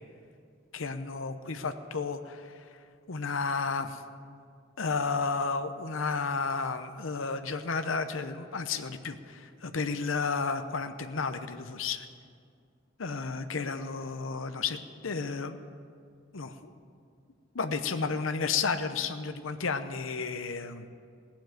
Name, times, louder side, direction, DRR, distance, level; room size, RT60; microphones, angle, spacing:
voice 1, 0.7-2.7 3.1-4.0 4.8-12.1 13.0-14.8 15.0-15.6 16.3-16.7 17.5-20.9, left 4 dB, 80° left, 9 dB, 0.8 m, -32 dB
17.0 x 7.3 x 9.1 m, 2.3 s
head